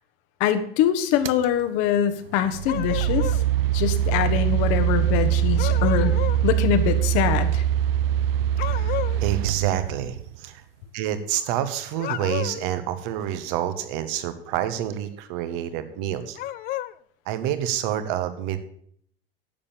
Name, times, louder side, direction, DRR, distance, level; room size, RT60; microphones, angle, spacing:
voice 1, 0.4-3.4 3.7-6.1 6.4-7.6, left 10 dB, 50° left, 9 dB, 1.4 m, -23 dB
sound 1, 1.2-1.4 2.4-10.4, right 11 dB, 70° right, 0.6 m, -23 dB
sound 2, 2.7-3.5 5.6-6.4 8.6-9.2 11.9-12.7 16.4-16.9, left 14 dB, 30° left, 0.4 m, -31 dB
voice 2, 8.6-8.9 9.2-10.6 10.9-16.4 17.2-18.6, right 11 dB, 55° right, 11 dB, 1.5 m, -28 dB
10.5 x 7.1 x 7.1 m, 0.65 s
figure-of-eight pair, 80°, 30 cm